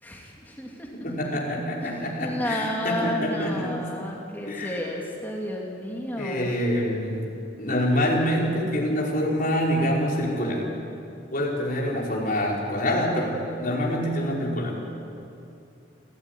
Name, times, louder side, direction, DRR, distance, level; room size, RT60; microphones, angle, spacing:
voice 1, 0.0-0.9 1.8-6.5 7.7-8.1, equal, 10° left, -1 dB, 2.4 m, -32 dB
voice 2, 0.9-3.8 4.5-4.9 6.2-7.3 7.6-10.7 11.3-14.8, equal, 45° left, -3 dB, 5.1 m, -26 dB
27.5 x 14.0 x 10.0 m, 2.6 s
head